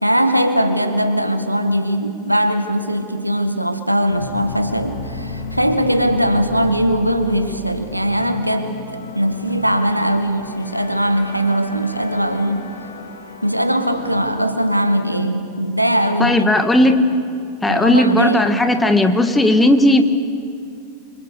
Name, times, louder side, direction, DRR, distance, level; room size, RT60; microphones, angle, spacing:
voice 1, 0.0-8.8 9.1-12.7 13.4-17.0 17.7-18.6, equal, 90° right, 8 dB, 1.6 m, -20 dB
sound 1, 4.1-14.3, left 3 dB, 70° left, 2.8 m, -34 dB
voice 2, 16.2-17.1 17.6-20.0, left 1 dB, 10° left, 8 dB, 1.5 m, -15 dB
26.0 x 25.0 x 6.7 m, 2.4 s
figure-of-eight pair, 90°, 0 cm